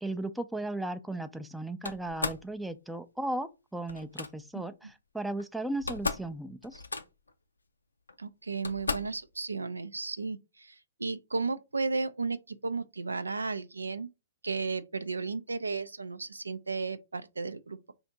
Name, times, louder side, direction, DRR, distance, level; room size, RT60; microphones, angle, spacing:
voice 1, 0.0-6.8, right 2 dB, 5° right, 0.4 m, -36 dB
Slam, 1.8-2.5 3.9-4.3 5.4-5.5 5.7-6.3 6.6-7.3 8.1-8.2 8.6-9.2, left 3 dB, 85° left, 0.5 m, -35 dB
voice 2, 8.2-14.1 14.4-17.9, right 4 dB, 85° right, 0.3 m, -34 dB
3.4 x 2.6 x 3.8 m
figure-of-eight pair, 120°, 0 cm